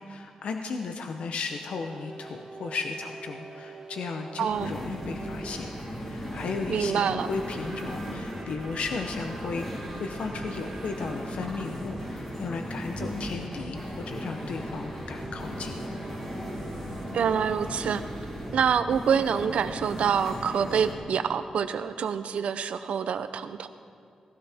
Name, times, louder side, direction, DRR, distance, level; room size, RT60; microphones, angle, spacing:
voice 1, 0.0-5.7 6.0-15.8, left 4 dB, 75° left, 5 dB, 0.7 m, -35 dB
sound 1, 1.7-5.6 7.3-11.4 13.7-18.6, right 3 dB, 40° right, 2.5 m, -46 dB
voice 2, 4.4-4.7 6.7-7.3 13.0-13.1 17.1-18.0 18.5-23.7, right 7 dB, 85° right, 11 dB, 0.6 m, -26 dB
sound 2, 4.5-20.9, equal, 20° left, 3.1 m, -37 dB
18.0 x 16.0 x 3.5 m, 2.3 s
wide cardioid pair, 165°, 2 cm